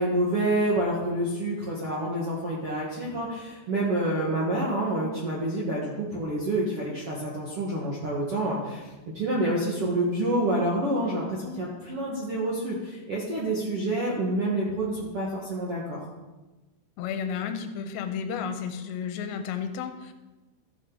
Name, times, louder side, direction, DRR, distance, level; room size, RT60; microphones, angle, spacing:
voice 1, 0.0-8.9 9.1-16.0, right 1 dB, 65° right, -5 dB, 1.4 m, -28 dB
voice 2, 17.0-20.1, left 7 dB, 90° left, 7 dB, 2.9 m, -32 dB
14.0 x 6.9 x 3.9 m, 1.1 s
omnidirectional pair, 5.0 m